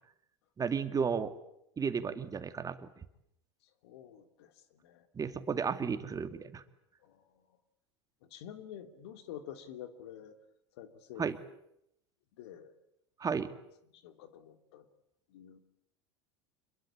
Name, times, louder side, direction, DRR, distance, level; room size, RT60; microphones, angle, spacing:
voice 1, 0.6-1.3 1.8-2.9 5.2-6.6 11.2-11.4 13.2-13.5, right 6 dB, 25° right, 9 dB, 2.3 m, -33 dB
voice 2, 3.6-5.1 7.0-7.6 8.2-10.4 10.7-11.3 12.4-12.7 13.9-14.9 15.3-15.6, left 10 dB, 70° left, 8 dB, 2.8 m, -49 dB
26.5 x 22.0 x 8.4 m, 0.80 s
hypercardioid pair, 80°, 14 cm